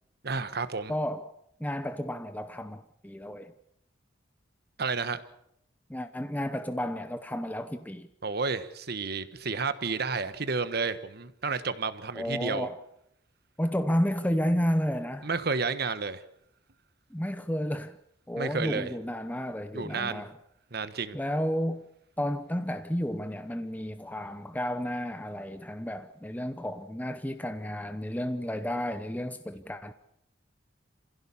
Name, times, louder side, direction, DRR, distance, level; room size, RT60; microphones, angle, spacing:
voice 1, 0.2-0.9 4.8-5.2 8.2-12.7 15.2-16.2 18.4-18.9 19.7-20.2 20.7-21.2, right 4 dB, 55° right, 1.3 m, -31 dB
voice 2, 0.9-1.3 1.6-3.5 5.9-8.1 12.1-12.8 13.6-15.3 17.1-18.0 18.3-20.3 21.1-21.9 22.2-29.9, equal, 10° left, 0.7 m, -32 dB
27.5 x 16.0 x 7.2 m
head